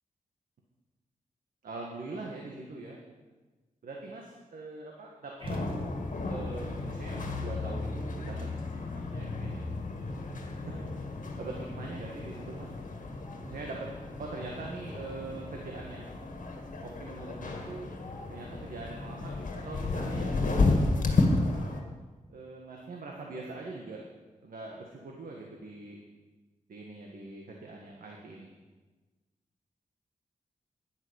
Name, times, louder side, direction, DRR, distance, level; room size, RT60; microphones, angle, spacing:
voice 1, 1.6-3.0 3.8-5.3 6.3-8.3 8.9-9.7 10.7-10.8 11.1-12.7 13.4-13.8 14.2-16.1 16.8-17.9 18.3-21.0 21.5-21.6 22.3-24.0 24.4-26.0 26.7-28.5, right 3 dB, 90° right, -1 dB, 1.7 m, -42 dB
sound 1, 5.4-21.8, left 3 dB, 65° left, 2.0 m, -33 dB
sound 2, 5.4-6.4, right 1 dB, 40° right, 2.2 m, -38 dB
11.0 x 10.0 x 7.1 m, 1.2 s
wide cardioid pair, 140°, 14 cm